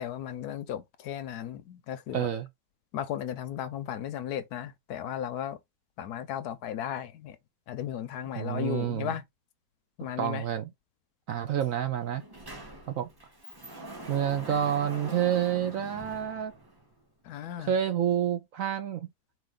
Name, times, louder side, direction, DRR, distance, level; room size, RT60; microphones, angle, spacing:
voice 1, 0.0-2.3 2.9-5.6 6.0-7.4 7.7-9.2 10.0-10.4 17.2-17.7, left 10 dB, 70° left, 1.0 m, -35 dB
voice 2, 2.1-2.5 8.4-9.1 10.2-10.7 11.3-12.2 12.9-13.1 14.1-16.5 17.6-19.1, right 9 dB, 65° right, 0.9 m, -28 dB
Sliding door, 11.6-11.7 12.0-17.0, right 1 dB, 15° right, 0.9 m, -44 dB
5.0 x 2.9 x 3.7 m
omnidirectional pair, 1.9 m